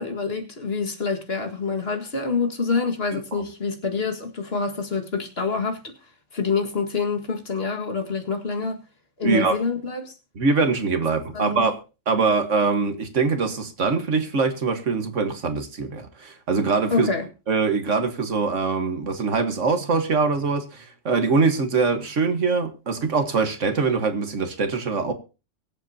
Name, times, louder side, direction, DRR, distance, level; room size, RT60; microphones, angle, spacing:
voice 1, 0.0-5.9 6.3-8.8 9.2-10.1 11.3-11.7 16.9-17.3, left 4 dB, 50° left, 2.1 m, -26 dB
voice 2, 3.1-3.4 9.2-9.6 10.4-11.8 12.1-17.1 17.5-25.1, right 4 dB, 70° right, 1.8 m, -23 dB
23.5 x 7.8 x 2.8 m
omnidirectional pair, 1.3 m